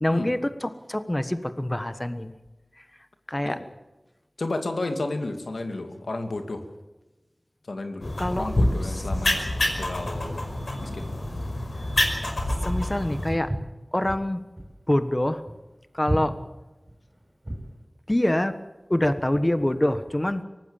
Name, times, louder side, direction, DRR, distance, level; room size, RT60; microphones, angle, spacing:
voice 1, 0.0-2.3 2.8-2.9 3.3-3.6 8.2-8.5 8.8-9.1 12.6-13.5 13.9-14.4 14.9-15.4 15.9-16.4 18.1-18.6 18.9-20.4, left 1 dB, 25° left, 10 dB, 1.3 m, -25 dB
voice 2, 4.4-6.7 7.6-9.5 9.8-10.4 10.8-11.1, left 2 dB, 90° left, 6 dB, 2.6 m, -32 dB
sound 1, 8.0-13.3, left 1 dB, 70° left, 5.3 m, -27 dB
Walk footsteps, 13.3-17.8, right 1 dB, 30° right, 6.2 m, -33 dB
24.0 x 18.5 x 7.3 m, 1.1 s
wide cardioid pair, 55°, 0 cm